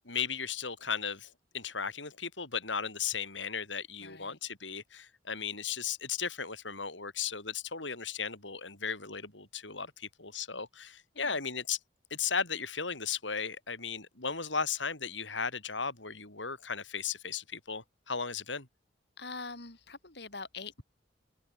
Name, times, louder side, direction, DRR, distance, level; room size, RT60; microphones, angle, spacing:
voice 1, 0.1-11.8 12.1-18.7, left 6 dB, 85° left, 7.5 m, -36 dB
voice 2, 4.0-4.4 11.1-11.3 19.2-20.8, left 4 dB, 65° left, 4.9 m, -44 dB
head